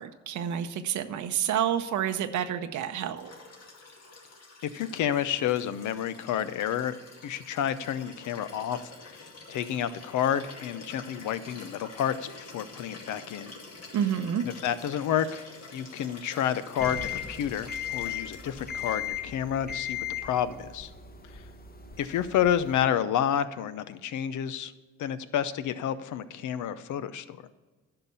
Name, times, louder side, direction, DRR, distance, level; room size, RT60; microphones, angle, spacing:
voice 1, 0.0-3.3 13.9-14.5, right 9 dB, 75° right, 8 dB, 0.7 m, -29 dB
Liquid, 3.2-19.2 20.5-20.6, left 3 dB, 60° left, 2.3 m, -48 dB
voice 2, 4.6-7.0 7.2-9.2 9.5-13.5 14.4-15.4 15.7-20.9 21.3-21.4 22.0-24.7 25.0-27.4, left 9 dB, 80° left, 14 dB, 0.7 m, -30 dB
sound 1, 16.8-22.8, left 9 dB, 30° left, 1.1 m, -37 dB
10.5 x 5.8 x 7.0 m, 1.3 s
cardioid pair, 80°, 30 cm